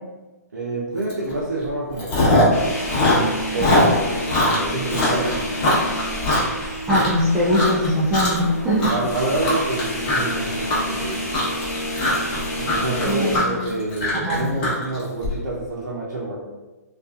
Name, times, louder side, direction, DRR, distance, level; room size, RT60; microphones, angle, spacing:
voice 1, 0.5-2.8 3.5-5.7 8.9-11.3 12.6-16.4, right 2 dB, 90° right, -6 dB, 0.6 m, -27 dB
Chewing mastication, 1.1-1.3 1.6-2.6 2.8-7.2 7.5-8.5 8.8-15.3, left 1 dB, 35° left, 1.0 m, -21 dB
sound 1, 2.5-13.4, equal, 60° left, 0.8 m, -29 dB
voice 2, 6.9-8.9 13.1-13.6 14.1-14.4, equal, 5° right, -9 dB, 0.4 m, -21 dB
2.4 x 2.3 x 2.3 m, 1.2 s
hypercardioid pair, 135°, 9 cm